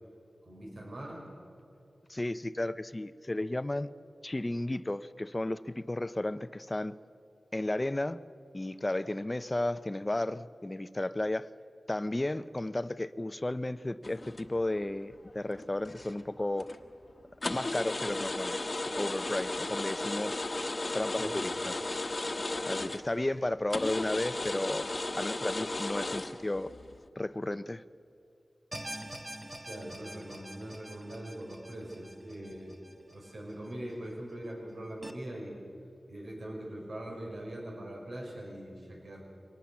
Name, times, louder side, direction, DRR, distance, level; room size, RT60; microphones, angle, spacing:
voice 1, 0.4-1.3 21.2-21.5 29.6-32.7 33.1-35.5 36.1-39.2, right 1 dB, 70° right, -1 dB, 6.1 m, -42 dB
voice 2, 2.1-3.9 4.2-7.0 7.5-8.2 8.5-11.5 11.9-16.7 17.4-20.4 20.9-21.7 22.7-24.9 25.2-26.7 27.2-27.8, left 1 dB, 25° left, 14 dB, 0.6 m, -33 dB
sound 1, 14.0-14.8 15.3-16.2 16.6-16.8 17.4-23.3 23.7-27.0, left 2 dB, 40° left, 1.2 m, -35 dB
sound 2, 28.7-33.9 34.3-34.4 35.0-35.1, right 1 dB, 20° right, 1.5 m, -45 dB
23.5 x 19.0 x 7.2 m, 2.6 s
wide cardioid pair, 85°, 0 cm